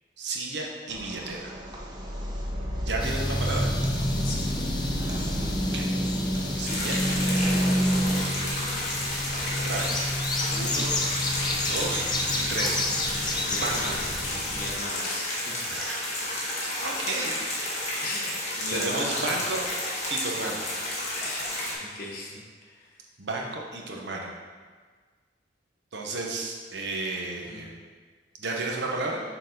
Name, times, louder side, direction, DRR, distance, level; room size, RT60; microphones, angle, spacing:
voice 1, 0.2-1.5 2.8-3.7 5.7-5.9 6.5-7.7 8.3-8.6 9.3-10.0 10.5-11.0 11.7-12.1 12.4-12.8 13.6-14.0 15.7-16.0 16.8-17.9 18.7-19.7 20.1-20.6 23.2-24.3 25.9-27.7 28.4-29.2, right 3 dB, 70° right, 0 dB, 0.9 m, -33 dB
sound 1, 0.9-8.2, equal, 25° right, 0.7 m, -28 dB
sound 2, 3.0-14.7, left 2 dB, 25° left, 0.6 m, -31 dB
voice 2, 4.2-4.6 13.4-14.0 14.5-15.5 18.0-19.4 21.2-22.4 22.7-22.9 27.4-27.6, left 2 dB, 55° left, -2 dB, 1.2 m, -37 dB
sound 3, 6.6-21.7, left 1 dB, 40° left, 1.5 m, -31 dB
6.6 x 4.0 x 3.9 m, 1.5 s
head